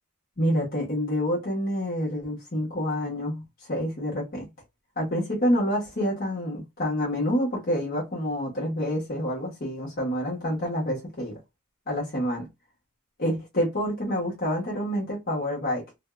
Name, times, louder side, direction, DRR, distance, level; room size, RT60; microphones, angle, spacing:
voice 1, 0.4-3.4 3.7-4.4 5.0-11.4 11.9-12.5 13.2-15.8, equal, 45° left, 1.3 m, -27 dB
3.4 x 2.7 x 2.3 m
head